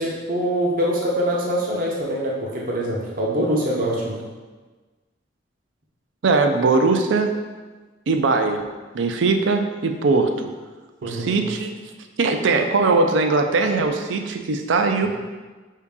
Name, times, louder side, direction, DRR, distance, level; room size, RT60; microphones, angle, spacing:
voice 1, 0.0-4.2 11.0-11.4, equal, 45° right, -4 dB, 0.7 m, -24 dB
voice 2, 6.2-7.4 8.1-8.6 8.9-10.5 11.0-11.8 12.2-15.1, right 3 dB, 75° right, 5 dB, 0.4 m, -20 dB
4.8 x 2.7 x 3.5 m, 1.3 s
head